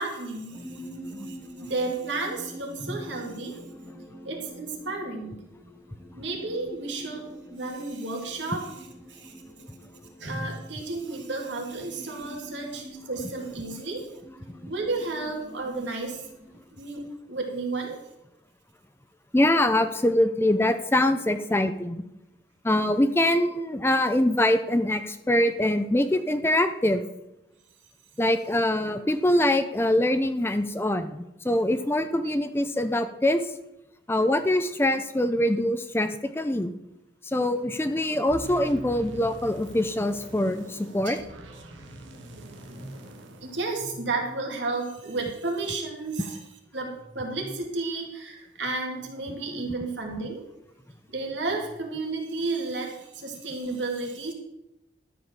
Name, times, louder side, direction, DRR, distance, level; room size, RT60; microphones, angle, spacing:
voice 1, 0.0-3.6 4.2-5.4 6.2-9.7 10.2-14.1 14.7-16.3 16.7-18.0 41.0-41.2 42.6-42.9 43.4-46.4 46.7-50.4 51.1-54.3, right 3 dB, 75° right, 1 dB, 2.4 m, -32 dB
sound 1, 0.5-16.6, equal, 10° right, 1.4 m, -46 dB
voice 2, 19.3-22.0 22.6-27.0 28.2-33.5 34.1-36.7 37.2-41.2, left 1 dB, 10° left, 9 dB, 0.5 m, -24 dB
sound 2, 38.3-44.4, right 1 dB, 90° right, 1.8 m, -44 dB
12.5 x 5.1 x 7.5 m, 0.88 s
head